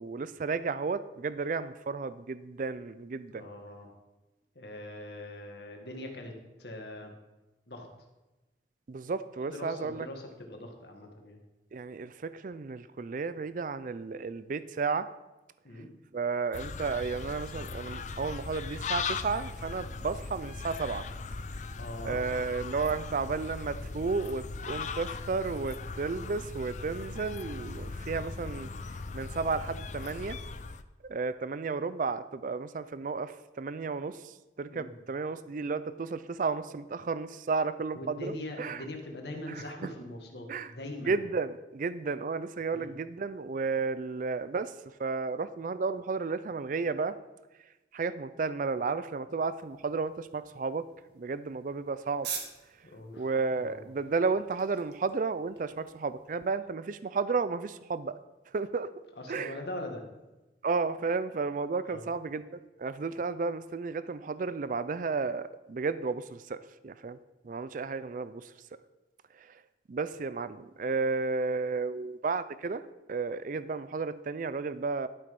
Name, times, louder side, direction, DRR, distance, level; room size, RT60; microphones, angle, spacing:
voice 1, 0.0-3.4 8.9-10.1 11.7-15.1 16.1-21.0 22.0-28.7 29.1-30.4 31.0-38.8 39.5-39.9 40.5-40.7 41.1-44.7 45.0-47.2 47.9-50.9 51.1-52.3 53.2-58.2 58.5-58.9 59.3-59.6 60.6-67.2 67.4-68.5 69.4-69.6 69.9-72.8 73.1-75.1, right 4 dB, 50° right, 14 dB, 0.4 m, -33 dB
voice 2, 3.3-3.9 4.6-7.1 7.7-7.9 9.5-11.4 15.6-15.9 21.8-22.2 34.7-34.9 37.9-41.3 42.7-42.9 52.8-53.8 59.2-60.0 61.9-62.1, left 1 dB, 70° left, 2 dB, 1.9 m, -42 dB
sound 1, 16.5-30.8, left 4 dB, 45° left, 0.5 m, -39 dB
sound 2, 49.4-56.5, right 6 dB, 70° right, 1.6 m, -46 dB
11.5 x 6.9 x 5.3 m, 1.1 s
head